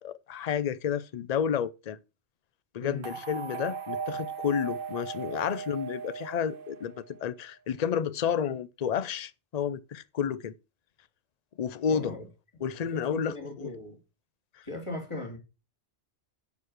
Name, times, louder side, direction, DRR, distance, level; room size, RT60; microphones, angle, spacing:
voice 1, 0.0-2.0 2.7-10.5 11.6-12.1 12.6-13.7, left 8 dB, 45° left, 0.6 m, -31 dB
sound 1, 3.0-7.3, right 6 dB, 55° right, 1.0 m, -38 dB
voice 2, 11.9-12.3 12.8-14.0 14.6-15.4, left 2 dB, 25° left, 3.2 m, -38 dB
10.5 x 4.8 x 6.4 m
omnidirectional pair, 1.2 m